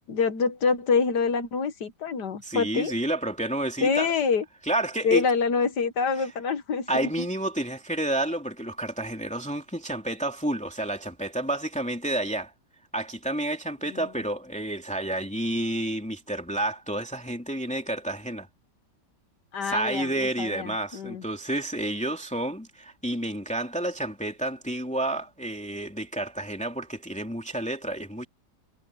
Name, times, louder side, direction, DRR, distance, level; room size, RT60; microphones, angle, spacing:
voice 1, 0.1-2.9 3.8-4.4 5.0-7.3 13.9-14.0 19.5-21.2, left 5 dB, 70° left, 2.0 m, -26 dB
voice 2, 2.4-4.1 4.6-5.2 6.2-6.3 6.9-12.5 12.9-18.5 19.6-28.3, right 1 dB, 5° left, 2.8 m, -30 dB
omnidirectional pair, 1.9 m